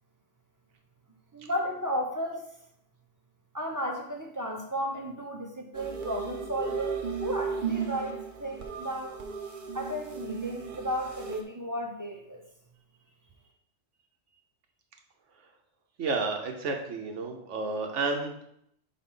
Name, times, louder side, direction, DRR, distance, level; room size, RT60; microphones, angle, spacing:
voice 1, 1.3-2.5 3.5-9.2 9.7-12.4, equal, 20° right, 1 dB, 0.6 m, -34 dB
sound 1, 5.7-11.4, right 6 dB, 50° right, 0.8 m, -35 dB
voice 2, 16.0-18.4, right 3 dB, 90° right, 3 dB, 1.2 m, -31 dB
4.4 x 4.1 x 5.4 m, 0.74 s
omnidirectional pair, 1.2 m